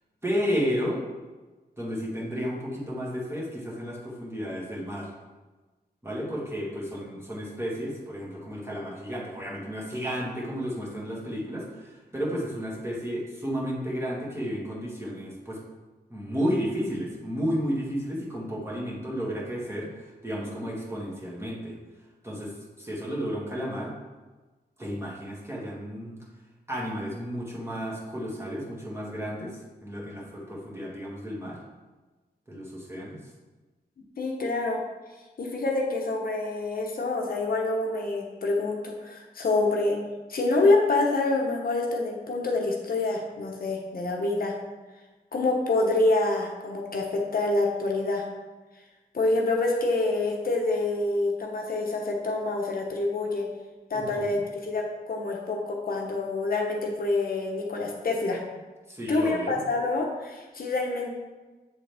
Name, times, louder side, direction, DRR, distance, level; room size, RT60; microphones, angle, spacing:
voice 1, 0.2-1.0 1.8-5.1 6.0-15.6 16.1-21.8 22.2-23.9 24.8-26.2 26.7-31.6 32.5-33.2 53.9-54.4 58.9-59.6, equal, 15° right, -4 dB, 1.7 m, -32 dB
voice 2, 34.2-34.8 35.4-40.0 40.3-44.5 45.3-48.2 49.1-53.4 53.9-58.4 59.1-61.2, left 2 dB, 60° left, 0 dB, 0.9 m, -26 dB
7.5 x 3.8 x 3.4 m, 1.2 s
cardioid pair, 80°, 17 cm